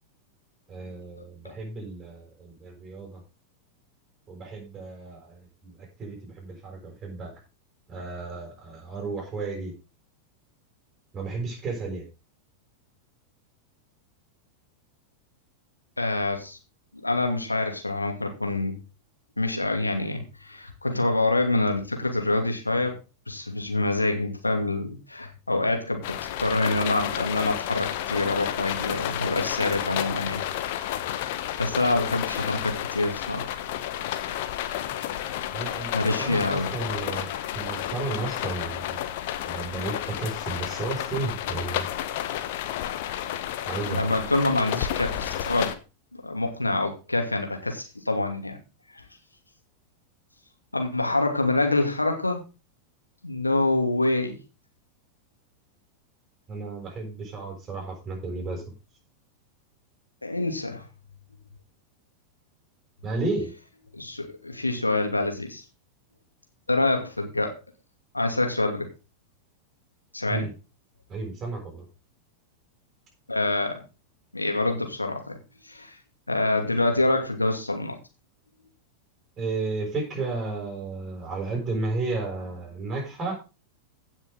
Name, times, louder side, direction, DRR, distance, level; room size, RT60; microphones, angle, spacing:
voice 1, 0.7-3.2 4.3-7.3 7.9-9.7 11.1-12.1 35.5-39.0 39.4-41.9 43.6-44.1 44.7-44.8 56.5-58.6 63.0-63.5 70.3-70.5 71.1-71.8 79.4-83.3, right 3 dB, 20° right, 0 dB, 6.5 m, -33 dB
voice 2, 16.0-16.6 17.0-18.8 19.4-23.0 23.3-30.4 30.7-31.1 31.6-33.5 35.9-36.7 43.9-45.8 46.2-48.6 48.9-49.0 50.7-52.4 53.2-54.4 60.2-60.8 63.9-65.6 66.7-67.5 68.1-68.9 70.1-70.5 73.3-73.8 74.3-75.4 75.6-76.0 76.3-78.0, left 2 dB, 85° left, 4 dB, 2.6 m, -26 dB
sound 1, 26.0-45.7, left 12 dB, 50° left, 1.2 m, -31 dB
16.5 x 6.2 x 4.0 m, 0.30 s
figure-of-eight pair, 90°, 0 cm